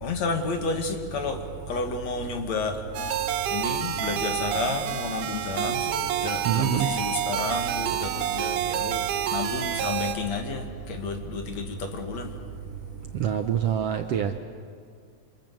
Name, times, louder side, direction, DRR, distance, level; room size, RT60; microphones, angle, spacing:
voice 1, 0.0-2.8 3.5-12.3, left 4 dB, 60° left, 5 dB, 3.1 m, -31 dB
sound 1, 2.3-13.7, left 4 dB, 80° left, 3.4 m, -48 dB
sound 2, 2.9-10.1, right 11 dB, 85° right, 2.8 m, -28 dB
voice 2, 6.5-6.9 13.2-14.3, right 10 dB, 70° right, 7 dB, 1.6 m, -25 dB
28.0 x 27.0 x 7.7 m, 2.2 s
omnidirectional pair, 3.6 m